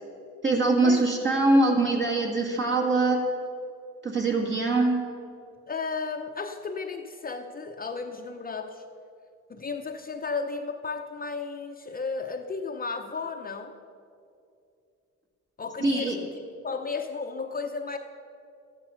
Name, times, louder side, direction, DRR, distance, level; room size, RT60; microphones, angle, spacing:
voice 1, 0.4-3.2 4.0-4.9 15.8-16.2, right 2 dB, 40° right, -1 dB, 2.2 m, -23 dB
voice 2, 5.7-8.8 9.5-13.8 15.6-16.3 16.6-18.0, left 4 dB, 30° left, 4 dB, 0.8 m, -34 dB
13.0 x 10.0 x 5.8 m, 2.5 s
cardioid pair, 90°, 30 cm